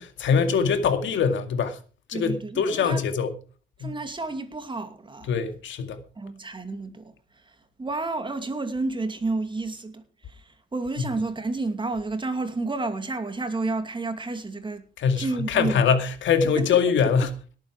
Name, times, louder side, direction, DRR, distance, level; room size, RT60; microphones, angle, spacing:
voice 1, 0.0-1.8 2.1-3.3 3.8-3.9 5.3-6.0 15.0-17.3, left 6 dB, 70° left, 2.2 m, -23 dB
voice 2, 2.1-3.1 3.8-5.3 6.2-7.1 7.8-14.8 15.2-15.8 16.5-16.7, right 3 dB, 25° right, 2.5 m, -30 dB
18.5 x 8.8 x 4.8 m
cardioid pair, 90°, 20 cm